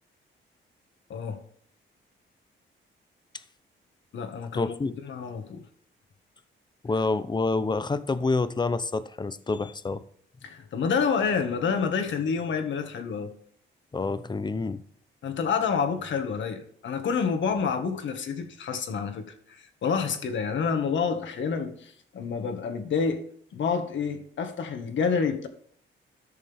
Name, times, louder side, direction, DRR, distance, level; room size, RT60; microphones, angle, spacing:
voice 1, 1.1-1.4 4.1-4.7 5.0-5.6 10.4-13.3 15.2-23.2 23.5-25.5, left 6 dB, 65° left, 1.7 m, -28 dB
voice 2, 4.5-4.9 6.8-10.0 13.9-14.8, left 3 dB, 20° left, 0.7 m, -27 dB
13.0 x 6.7 x 3.5 m
cardioid pair, 110°, 21 cm